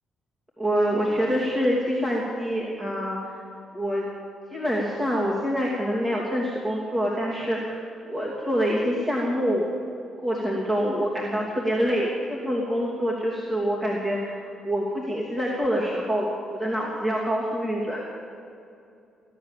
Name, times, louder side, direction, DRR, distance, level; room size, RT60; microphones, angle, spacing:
voice 1, 0.6-3.4 3.7-4.1 4.5-9.7 10.2-18.1, equal, 20° right, -4 dB, 2.6 m, -26 dB
16.0 x 10.5 x 7.4 m, 2.6 s
cardioid pair, 90°, 0 cm